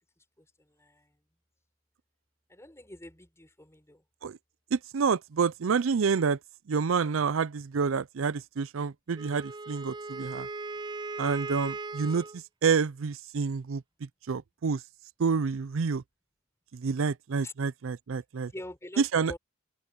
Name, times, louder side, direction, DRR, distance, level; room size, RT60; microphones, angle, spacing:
voice 1, 0.4-1.2 2.5-4.0 17.4-17.5 18.5-19.0 19.3-19.4, left 1 dB, 15° left, 5.6 m, -45 dB
voice 2, 4.7-6.4 6.7-10.5 11.2-14.8 15.2-16.0 16.7-18.5 19.0-19.3, right 5 dB, 75° right, 0.5 m, -28 dB
Wind instrument woodwind instrument, 9.2-12.4, right 3 dB, 20° right, 0.5 m, -38 dB
open air
head